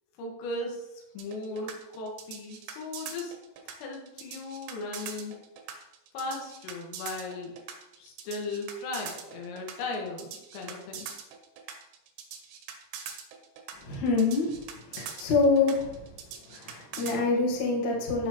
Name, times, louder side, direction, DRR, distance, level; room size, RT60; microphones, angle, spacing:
voice 1, 0.2-3.3 3.7-5.3 6.1-7.5 8.0-11.1, left 2 dB, 85° left, 0 dB, 4.4 m, -37 dB
sound 1, 1.2-17.2, right 7 dB, 70° right, 2.9 m, -42 dB
voice 2, 13.8-14.6 14.9-16.0 16.5-18.3, left 3 dB, 60° left, -3 dB, 1.9 m, -26 dB
15.5 x 5.6 x 3.1 m, 0.94 s
omnidirectional pair, 5.8 m